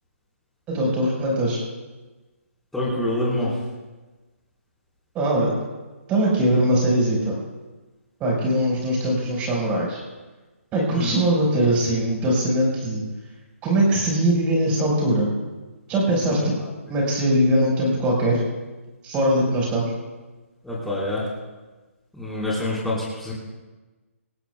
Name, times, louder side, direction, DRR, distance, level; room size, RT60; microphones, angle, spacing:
voice 1, 0.7-1.6 5.1-5.5 6.1-7.4 8.2-10.0 10.7-13.0 13.6-15.3 15.9-16.5 16.9-18.4 19.0-19.9, right 1 dB, 15° right, -2 dB, 5.2 m, -21 dB
voice 2, 2.7-3.5 10.9-11.1 16.4-16.5 20.6-21.2 22.1-23.3, left 1 dB, ahead, -7 dB, 4.7 m, -26 dB
27.0 x 16.0 x 2.4 m, 1.2 s
hypercardioid pair, 155°, 8 cm